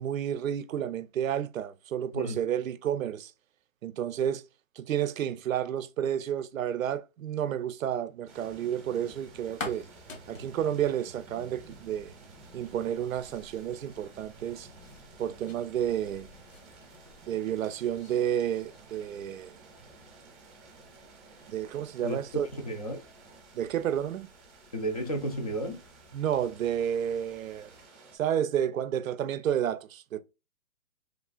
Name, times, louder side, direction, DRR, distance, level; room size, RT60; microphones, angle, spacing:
voice 1, 0.0-3.3 3.8-4.4 4.8-9.9 10.3-12.1 12.5-14.7 15.2-16.3 17.2-19.6 21.5-22.5 23.5-24.3 26.1-27.7 28.1-30.2, right 10 dB, 80° right, 0.5 m, -31 dB
sound 1, 8.3-28.2, right 3 dB, 15° right, 0.6 m, -53 dB
sound 2, 8.9-27.9, left 3 dB, 70° left, 1.3 m, -51 dB
voice 2, 22.5-23.0 24.7-25.8, right 1 dB, 30° left, 0.4 m, -32 dB
3.4 x 2.4 x 2.3 m
hypercardioid pair, 150°, 40 cm